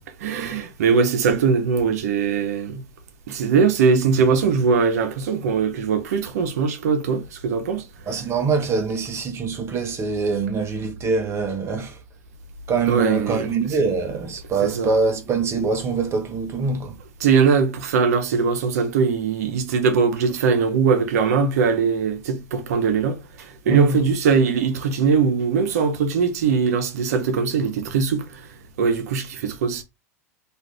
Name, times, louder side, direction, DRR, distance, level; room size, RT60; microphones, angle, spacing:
voice 1, 0.2-2.8 3.3-7.9 12.9-13.5 14.6-14.9 17.2-29.8, right 5 dB, 70° right, 0.7 m, -21 dB
voice 2, 8.1-12.0 12.7-17.0 23.7-24.0, right 4 dB, 30° right, 0.7 m, -24 dB
2.5 x 2.4 x 3.4 m
hypercardioid pair, 95°, 9 cm